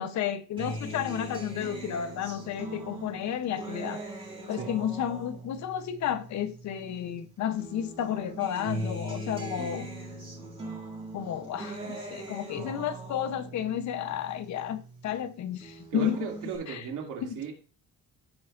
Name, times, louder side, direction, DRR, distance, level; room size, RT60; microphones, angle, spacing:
voice 1, 0.0-4.0 4.5-9.9 11.1-16.3 16.7-16.9 17.2-17.3, left 10 dB, 65° left, 0.9 m, -32 dB
Acoustic guitar, 0.6-7.2 7.6-15.2 15.6-16.6, right 2 dB, 15° right, 3.0 m, -40 dB
voice 2, 15.9-17.5, right 7 dB, 75° right, 2.7 m, -36 dB
15.5 x 5.2 x 2.5 m
cardioid pair, 130°, 31 cm